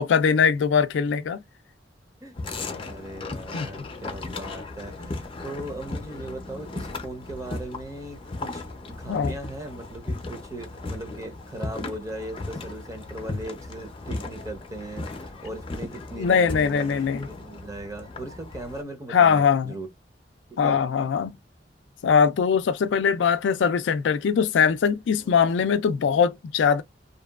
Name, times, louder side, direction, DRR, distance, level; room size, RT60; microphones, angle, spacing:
voice 1, 0.0-1.4 3.5-3.7 9.1-9.3 16.2-17.3 19.1-19.7 20.6-21.3 22.0-26.8, left 6 dB, 85° left, 0.3 m, -21 dB
sound 1, 2.3-18.8, left 2 dB, 30° left, 0.5 m, -36 dB
voice 2, 2.7-19.9 20.5-20.8 25.2-25.4, right 1 dB, 20° right, 0.7 m, -38 dB
2.7 x 2.2 x 2.3 m
head